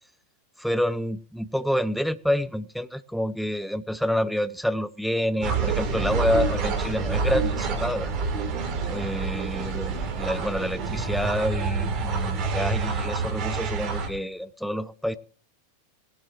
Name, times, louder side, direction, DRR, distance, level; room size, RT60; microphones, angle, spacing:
voice 1, 0.6-8.1 8.9-15.2, equal, ahead, 0.7 m, -28 dB
sound 1, 5.4-14.1, right 4 dB, 40° right, 3.0 m, -27 dB
19.5 x 12.5 x 3.0 m
figure-of-eight pair, 90°, 0 cm